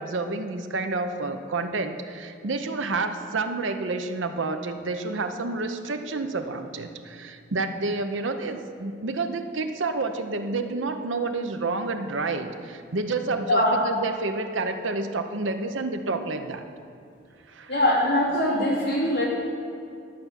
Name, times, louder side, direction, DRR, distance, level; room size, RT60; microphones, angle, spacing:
voice 1, 0.0-16.6 17.5-17.7, right 3 dB, 80° right, 7 dB, 0.8 m, -29 dB
voice 2, 13.5-13.8 17.7-19.3, left 1 dB, 60° left, -5 dB, 2.8 m, -22 dB
11.5 x 5.7 x 8.1 m, 2.5 s
head